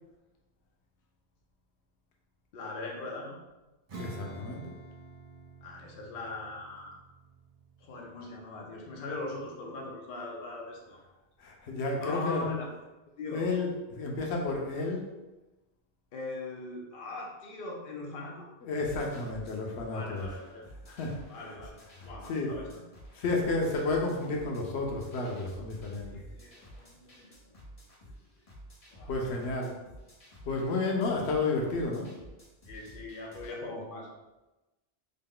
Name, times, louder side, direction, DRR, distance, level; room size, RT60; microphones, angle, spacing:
voice 1, 2.5-3.4 5.6-7.0 7.8-11.0 12.0-12.7 13.2-13.4 16.1-18.5 19.9-20.6 21.3-22.8 26.0-27.6 28.9-29.1 29.7-29.8 32.7-34.1, left 2 dB, 60° left, -1 dB, 0.8 m, -40 dB
Acoustic guitar / Strum, 3.9-9.9, right 2 dB, 40° right, 0.6 m, -49 dB
voice 2, 4.0-4.7 11.4-12.4 13.3-15.0 18.6-20.3 20.8-21.6 22.0-22.6 23.1-26.1 29.1-29.7 30.4-32.1, left 3 dB, 85° left, 0 dB, 0.9 m, -31 dB
sound 1, 18.8-33.5, equal, 35° left, 1.0 m, -52 dB
3.8 x 2.2 x 3.7 m, 1.1 s
omnidirectional pair, 1.1 m